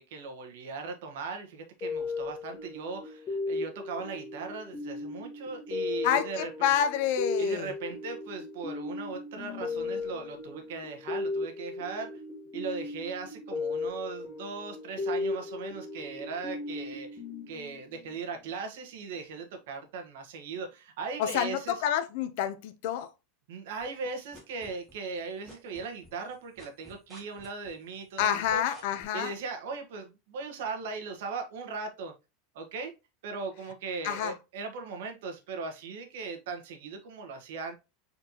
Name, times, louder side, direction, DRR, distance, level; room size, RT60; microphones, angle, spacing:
voice 1, 0.0-6.7 7.4-12.1 12.5-17.2 17.5-21.7 23.5-28.6 29.1-32.1 32.5-32.9 33.2-37.8, right 4 dB, 70° right, 1.3 m, -38 dB
sound 1, 1.8-18.1, left 3 dB, 20° left, 1.3 m, -36 dB
voice 2, 6.0-7.7 21.2-23.1 28.2-29.3 34.0-34.4, left 9 dB, 50° left, 0.6 m, -28 dB
sound 2, 23.8-25.2 25.5-29.0, equal, 5° left, 1.7 m, -51 dB
4.4 x 4.2 x 2.8 m
supercardioid pair, 170°, 0 cm